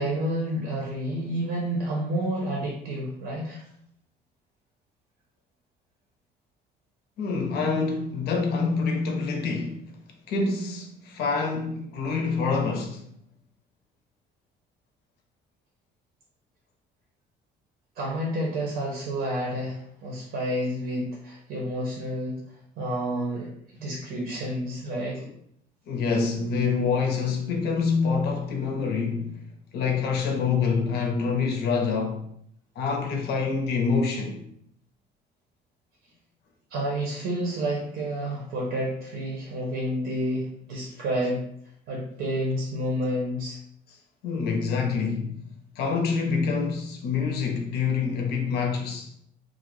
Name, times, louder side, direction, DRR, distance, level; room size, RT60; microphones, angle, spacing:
voice 1, 0.0-3.6 18.0-22.4 22.8-25.3 36.7-41.4 41.9-43.6, right 1 dB, 75° right, 0.6 m, -29 dB
voice 2, 7.2-9.9 10.3-13.0 25.9-29.4 29.7-32.3 32.8-34.4 44.2-45.4 45.8-49.1, left 5 dB, 75° left, 0.6 m, -26 dB
2.4 x 2.0 x 3.0 m
cardioid pair, 110°, 17 cm